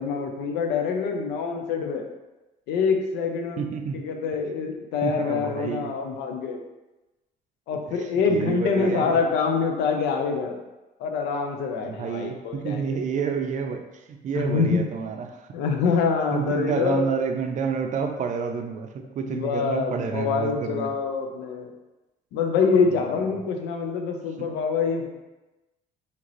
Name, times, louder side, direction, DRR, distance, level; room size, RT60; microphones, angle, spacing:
voice 1, 0.0-2.0 2.7-3.6 3.9-6.6 7.7-10.6 11.0-13.1 14.3-14.8 15.5-17.1 19.3-21.7 22.3-25.1, left 5 dB, 90° left, 4 dB, 0.6 m, -25 dB
voice 2, 3.6-4.0 5.0-5.9 7.9-9.2 11.8-15.5 16.3-20.9 22.8-23.3 24.4-24.5, right 6 dB, 45° right, 5 dB, 0.4 m, -29 dB
3.7 x 2.9 x 3.1 m, 1.1 s
cardioid pair, 110°, 17 cm